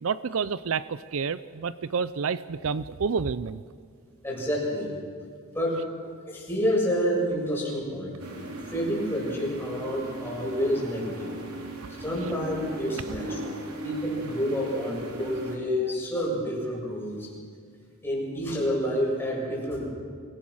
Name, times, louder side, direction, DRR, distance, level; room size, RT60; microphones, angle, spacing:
voice 1, 0.0-3.6, right 5 dB, 65° right, 15 dB, 0.5 m, -29 dB
voice 2, 4.2-4.9 5.5-5.8 6.3-8.2 8.7-11.3 12.0-13.5 13.8-17.3 18.0-19.9, equal, 10° left, -4 dB, 7.2 m, -28 dB
sound 1, 8.2-15.6, right 1 dB, 90° right, 3.4 m, -38 dB
27.0 x 19.0 x 6.4 m, 2.1 s
head